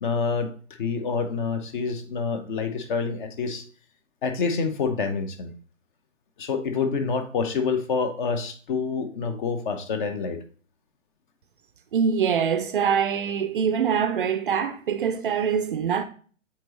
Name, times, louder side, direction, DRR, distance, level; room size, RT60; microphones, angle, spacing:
voice 1, 0.0-0.5 0.8-3.6 4.2-5.5 6.4-10.4, left 5 dB, 40° left, 0.9 m, -27 dB
voice 2, 11.9-16.0, right 7 dB, 45° right, 0.5 m, -24 dB
7.6 x 4.0 x 3.1 m
figure-of-eight pair, 130°, 39 cm